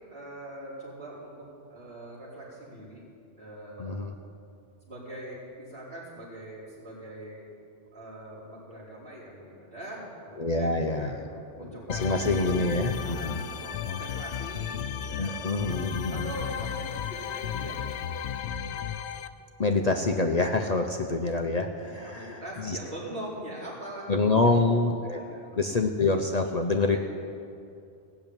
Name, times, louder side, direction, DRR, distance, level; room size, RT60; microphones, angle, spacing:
voice 1, 0.1-3.0 3.4-3.9 4.8-7.5 7.9-15.4 16.1-17.8 21.8-24.7 25.1-25.5 26.8-27.0, right 1 dB, 60° right, -8 dB, 5.1 m, -42 dB
voice 2, 3.8-4.2 10.4-11.3 11.5-13.4 15.2-16.3 19.6-22.8 24.1-27.0, left 3 dB, 40° left, 4 dB, 0.8 m, -26 dB
sound 1, 11.9-19.3, left 8 dB, 80° left, 0.9 m, -34 dB
18.0 x 7.0 x 8.9 m, 2.6 s
omnidirectional pair, 1.1 m